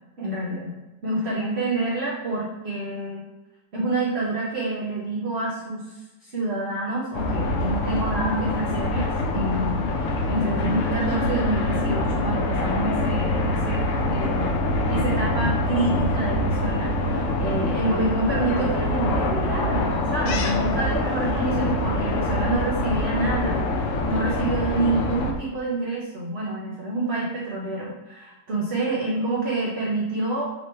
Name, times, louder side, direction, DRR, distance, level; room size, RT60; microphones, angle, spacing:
voice 1, 0.2-0.7 1.0-3.2 3.7-13.8 14.1-14.6 14.9-30.5, right 2 dB, 55° right, -4 dB, 0.7 m, -27 dB
sound 1, 7.1-25.3, left 1 dB, 85° left, 0.6 m, -25 dB
3.2 x 3.0 x 4.3 m, 1.0 s
omnidirectional pair, 1.9 m